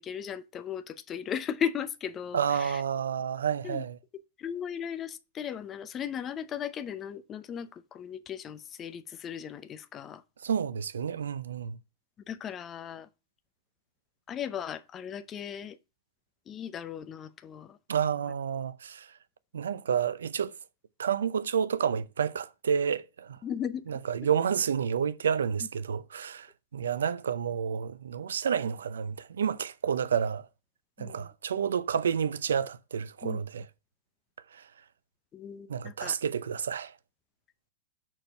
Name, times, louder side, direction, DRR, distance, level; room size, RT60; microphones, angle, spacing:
voice 1, 0.0-2.8 3.6-3.9 4.4-10.2 12.3-13.1 14.3-15.8 16.5-17.8 23.4-23.9 31.0-31.3 33.2-33.4 35.3-36.2, left 8 dB, 25° left, 0.7 m, -37 dB
voice 2, 2.3-4.0 10.4-11.8 17.9-19.1 19.5-20.5 21.0-23.4 23.9-30.5 31.0-33.6 34.5-34.7 35.7-36.9, right 7 dB, 75° right, 0.6 m, -30 dB
6.3 x 4.5 x 5.7 m
figure-of-eight pair, 105°, 0 cm